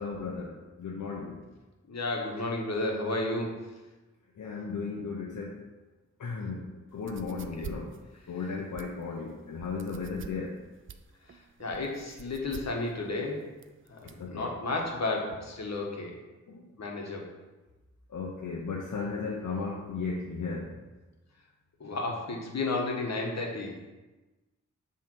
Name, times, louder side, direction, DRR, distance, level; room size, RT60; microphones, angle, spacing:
voice 1, 0.0-1.4 4.4-5.6 6.2-8.0 8.3-10.6 14.0-14.5 16.5-16.7 18.1-20.8, left 4 dB, 75° left, -2 dB, 1.0 m, -35 dB
voice 2, 1.9-3.6 7.6-7.7 11.3-13.5 13.9-16.2 16.8-17.3 21.8-23.8, left 2 dB, 55° left, 0 dB, 1.5 m, -32 dB
sound 1, 6.9-14.3, right 7 dB, 40° right, 0.5 m, -47 dB
7.5 x 3.5 x 6.3 m, 1.2 s
wide cardioid pair, 95°, 31 cm